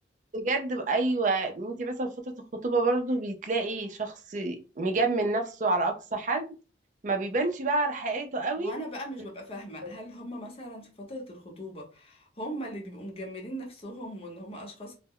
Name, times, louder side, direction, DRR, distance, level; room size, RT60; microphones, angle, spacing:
voice 1, 0.3-2.3 2.6-6.5 7.0-8.7 9.8-10.0, right 3 dB, 45° right, 0.5 m, -28 dB
voice 2, 8.6-14.9, equal, 35° left, 0.8 m, -39 dB
2.1 x 2.1 x 3.5 m
head